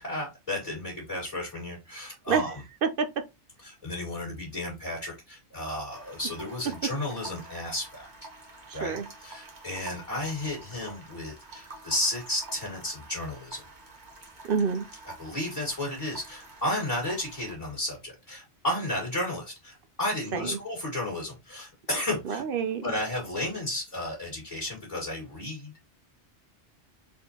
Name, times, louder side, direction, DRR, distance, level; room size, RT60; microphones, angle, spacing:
voice 1, 0.0-2.5 3.6-8.1 8.7-13.6 15.2-22.4 22.8-25.7, left 1 dB, 30° left, 2.0 m, -33 dB
voice 2, 2.3-3.1 8.7-9.1 14.4-14.9 20.3-20.6 22.2-22.8, right 6 dB, 60° right, 0.7 m, -28 dB
sound 1, 5.9-17.5, right 2 dB, 45° right, 1.2 m, -48 dB
4.1 x 3.8 x 2.8 m
omnidirectional pair, 1.1 m